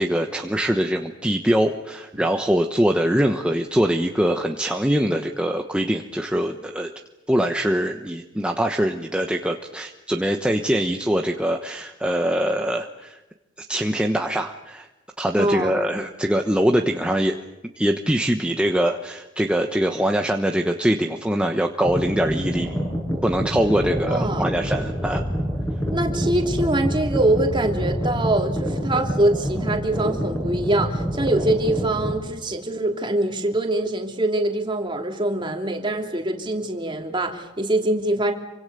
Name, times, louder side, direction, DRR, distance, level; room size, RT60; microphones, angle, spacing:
voice 1, 0.0-6.9 7.3-13.2 13.7-14.9 15.2-17.4 17.8-22.8 23.2-25.3, equal, 5° right, 3 dB, 1.1 m, -23 dB
voice 2, 15.4-15.8 24.0-24.5 25.9-38.3, right 1 dB, 25° right, 3 dB, 3.1 m, -23 dB
sound 1, 21.8-32.2, equal, 15° left, 7.4 m, -26 dB
27.5 x 25.0 x 6.9 m, 1.0 s
head